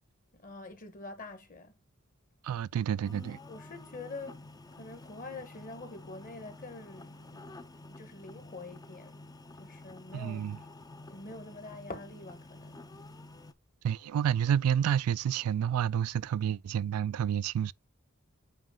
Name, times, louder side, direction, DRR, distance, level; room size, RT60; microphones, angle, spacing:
voice 1, 0.3-1.7 3.5-9.3 9.6-10.6 11.1-12.8, left 3 dB, 40° left, 1.2 m, -46 dB
voice 2, 2.4-3.4 10.1-10.6 13.8-17.7, right 9 dB, 80° right, 0.3 m, -29 dB
sound 1, 3.0-13.5, left 2 dB, 15° left, 0.4 m, -50 dB
9.1 x 3.1 x 3.7 m
head